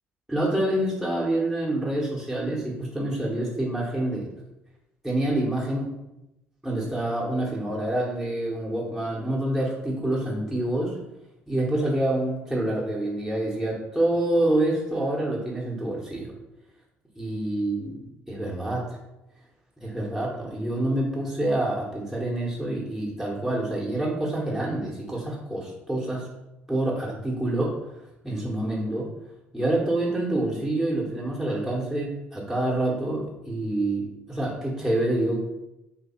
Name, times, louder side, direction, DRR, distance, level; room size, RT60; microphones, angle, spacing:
voice 1, 0.3-4.3 5.0-5.9 6.6-11.0 11.5-16.3 17.2-18.8 19.8-26.2 26.7-27.7 28.2-29.1 29.5-35.4, right 1 dB, 5° right, -5 dB, 1.1 m, -27 dB
3.4 x 2.8 x 4.3 m, 0.92 s
figure-of-eight pair, 50°, 6 cm